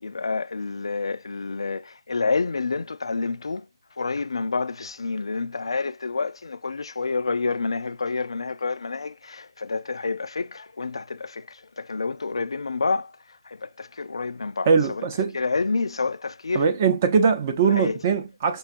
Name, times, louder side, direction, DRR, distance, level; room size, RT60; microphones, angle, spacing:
voice 1, 0.0-3.7 4.0-13.1 13.5-15.0 15.3-16.6 17.8-18.0, left 4 dB, 75° left, 0.3 m, -28 dB
voice 2, 14.7-15.4 16.5-18.6, right 5 dB, 25° right, 0.6 m, -21 dB
6.6 x 2.3 x 2.4 m
figure-of-eight pair, 165°, 3 cm